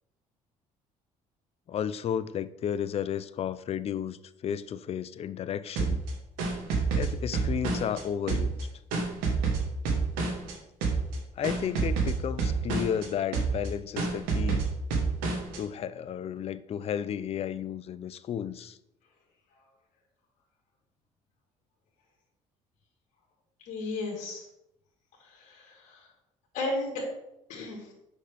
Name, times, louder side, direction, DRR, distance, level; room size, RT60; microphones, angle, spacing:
voice 1, 1.7-4.2 4.4-6.0 7.0-8.5 11.4-14.7 15.6-18.8, left 9 dB, 45° left, 15 dB, 0.4 m, -33 dB
sound 1, 5.8-8.0 8.3-10.5 10.8-11.2 11.4-13.1 13.3-13.7 14.0-15.6, right 4 dB, 90° right, 1.3 m, -28 dB
voice 2, 23.7-24.4 25.3-26.0 26.5-27.0 27.5-27.9, left 2 dB, 70° left, -2 dB, 1.6 m, -34 dB
6.3 x 5.3 x 3.4 m, 0.83 s
supercardioid pair, 85°, 14 cm